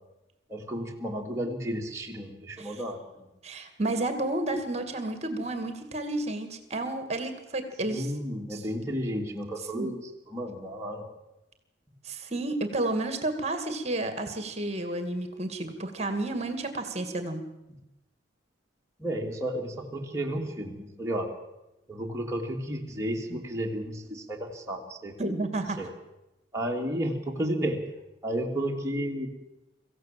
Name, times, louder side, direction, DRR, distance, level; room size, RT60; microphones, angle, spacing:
voice 1, 0.5-3.3 7.8-10.0 10.3-11.1 19.0-21.3 21.9-25.2 25.8-25.9 26.5-27.8 28.2-29.3, right 1 dB, 15° right, 0 dB, 2.8 m, -32 dB
voice 2, 3.4-8.1 8.5-8.7 9.6-9.9 12.0-17.5 23.3-23.4 25.2-25.8, right 2 dB, 35° right, 8 dB, 2.2 m, -31 dB
25.0 x 15.5 x 7.7 m, 0.97 s
head